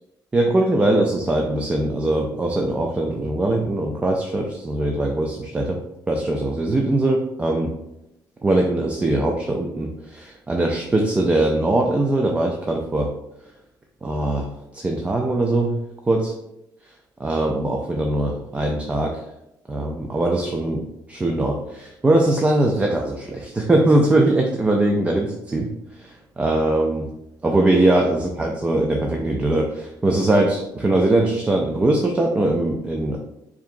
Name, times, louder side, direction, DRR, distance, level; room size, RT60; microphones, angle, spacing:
voice 1, 0.3-5.8 6.1-7.7 8.4-13.1 14.0-14.5 14.7-15.8 16.1-16.3 17.2-19.2 19.7-20.8 21.1-25.7 26.0-27.1 27.4-33.2, right 2 dB, 15° right, 1 dB, 0.4 m, -21 dB
4.7 x 2.8 x 2.6 m, 0.85 s
cardioid pair, 140°, 8 cm